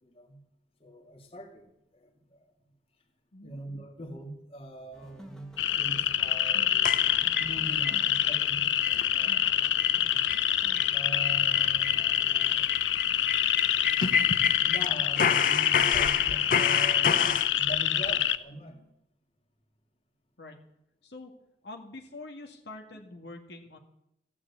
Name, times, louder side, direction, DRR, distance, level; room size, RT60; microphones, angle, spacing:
voice 1, 0.0-0.4 0.8-2.5 3.4-7.0 7.4-9.4 10.9-12.7 14.6-18.9, right 1 dB, 30° left, 3 dB, 2.4 m, -42 dB
voice 2, 3.3-3.6 20.4-20.6 21.0-21.3 21.6-23.8, left 2 dB, 65° left, 2 dB, 1.9 m, -45 dB
sound 1, 4.9-12.7, equal, 5° left, 1.6 m, -51 dB
sound 2, 5.6-18.4, left 11 dB, 90° left, 0.7 m, -26 dB
sound 3, 6.9-8.0 8.4-8.5 8.8-9.1 9.3-9.4 9.8-10.0 10.3-10.5 10.8-10.9 11.2-14.9 15.2-17.5, left 6 dB, 45° left, 0.8 m, -29 dB
15.0 x 9.8 x 8.3 m, 0.80 s
head